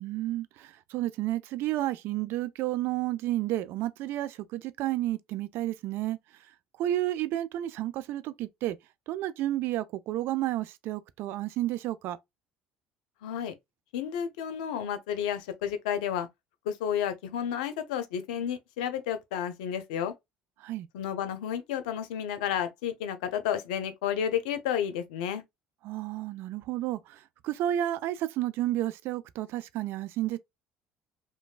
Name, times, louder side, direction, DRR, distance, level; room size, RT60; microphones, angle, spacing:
voice 1, 0.0-6.2 6.8-8.8 9.1-12.2 20.6-20.9 25.8-30.4, right 14 dB, 65° right, 0.4 m, -31 dB
voice 2, 13.2-13.5 13.9-16.3 16.7-20.1 20.9-25.4, left 9 dB, 80° left, 0.5 m, -31 dB
3.0 x 2.1 x 2.4 m
hypercardioid pair, 65°, 4 cm